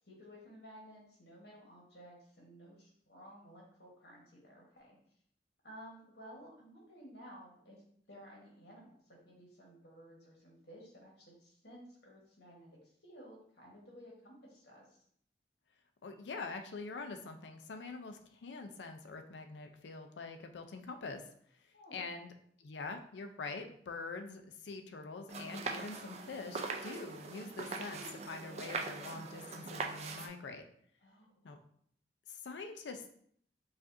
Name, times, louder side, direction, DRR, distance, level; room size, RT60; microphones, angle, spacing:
voice 1, 0.1-5.0 5.6-15.0 21.7-22.2 31.0-31.5, equal, 65° left, -2 dB, 1.3 m, -55 dB
voice 2, 16.0-21.2 21.9-22.3 22.6-30.6 31.4-31.6 32.3-33.2, left 3 dB, 85° left, 6 dB, 0.4 m, -45 dB
sound 1, 25.3-30.3, right 4 dB, 35° right, 0.4 m, -41 dB
4.8 x 2.5 x 2.6 m, 0.64 s
head